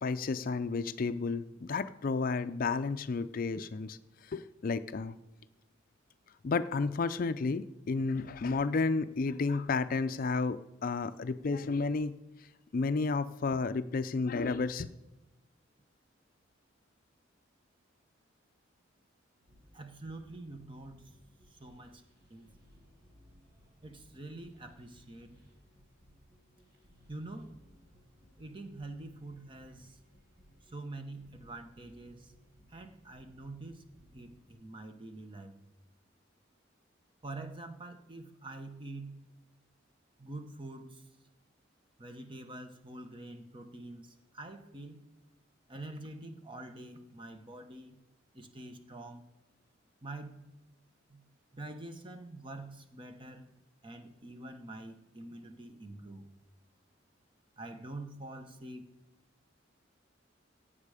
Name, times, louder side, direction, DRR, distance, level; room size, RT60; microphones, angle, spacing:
voice 1, 0.0-4.0 4.3-5.1 6.4-12.1 12.7-14.9, left 4 dB, 45° left, 12 dB, 0.4 m, -32 dB
sound 1, 19.4-34.5, equal, 55° right, 4.1 m, -62 dB
voice 2, 19.7-21.0 21.6-22.0 22.3-22.5 23.8-25.3 27.1-27.5 28.4-30.0 30.7-32.3 32.7-33.8 34.1-35.6 37.2-39.2 40.2-41.0 42.0-45.0 45.7-48.0 48.3-49.2 50.0-50.5 51.1-51.2 51.5-53.5 53.8-56.3 57.6-58.9, right 2 dB, 25° right, 7 dB, 0.9 m, -46 dB
16.5 x 7.4 x 4.9 m, 1.0 s
head